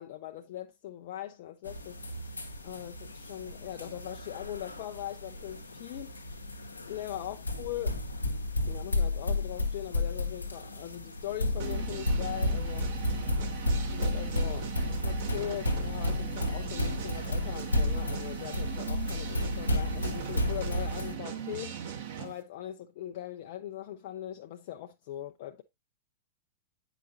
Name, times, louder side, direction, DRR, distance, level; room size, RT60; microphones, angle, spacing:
voice 1, 0.0-2.0 2.6-6.2 6.9-8.0 8.7-12.9 13.9-14.7 15.0-21.8 22.2-25.6, left 12 dB, 55° left, 0.5 m, -40 dB
sound 1, 1.6-21.1, left 1 dB, 85° left, 0.9 m, -32 dB
sound 2, 11.6-22.3, right 9 dB, 60° right, 1.5 m, -39 dB
8.6 x 4.9 x 2.6 m
figure-of-eight pair, 100°, 0 cm